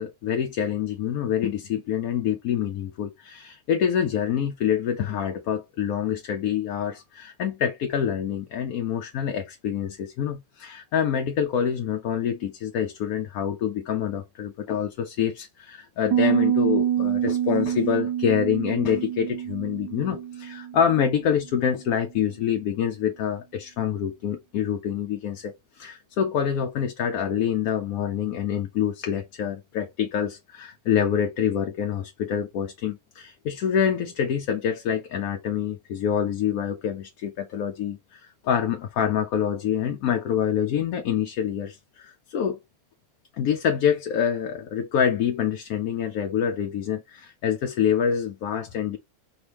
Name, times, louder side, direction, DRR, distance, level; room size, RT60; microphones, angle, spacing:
voice 1, 0.0-42.6 43.4-49.0, left 8 dB, 75° left, 1.0 m, -26 dB
Piano, 16.1-21.7, right 10 dB, 75° right, 1.2 m, -27 dB
4.5 x 2.9 x 3.3 m
omnidirectional pair, 1.6 m